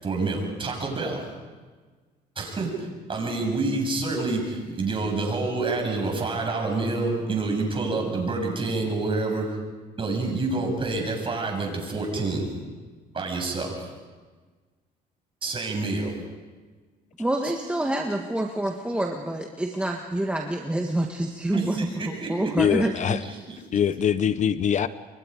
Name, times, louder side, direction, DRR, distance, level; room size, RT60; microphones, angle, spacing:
voice 1, 0.0-1.3 2.4-9.5 10.0-12.5 13.1-13.9 15.4-16.2 17.4-17.5 21.5-22.7 23.2-23.4, right 3 dB, 30° right, 1 dB, 7.8 m, -28 dB
voice 2, 17.2-21.8 22.1-23.2, right 1 dB, 5° right, 1 dB, 1.7 m, -27 dB
voice 3, 22.6-23.2 23.7-24.9, left 8 dB, 45° left, 14 dB, 0.7 m, -23 dB
29.5 x 24.0 x 5.2 m, 1.4 s
cardioid pair, 110°, 17 cm